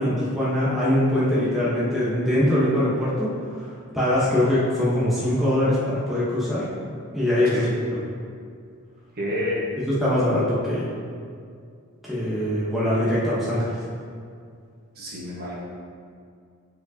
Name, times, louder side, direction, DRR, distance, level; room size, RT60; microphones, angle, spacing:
voice 1, 0.0-6.7 7.1-7.7 9.8-10.9 12.0-13.7, left 1 dB, ahead, -10 dB, 1.0 m, -22 dB
voice 2, 9.1-9.6 14.9-15.5, left 1 dB, 45° right, -6 dB, 1.3 m, -29 dB
7.5 x 4.6 x 2.8 m, 2.2 s
head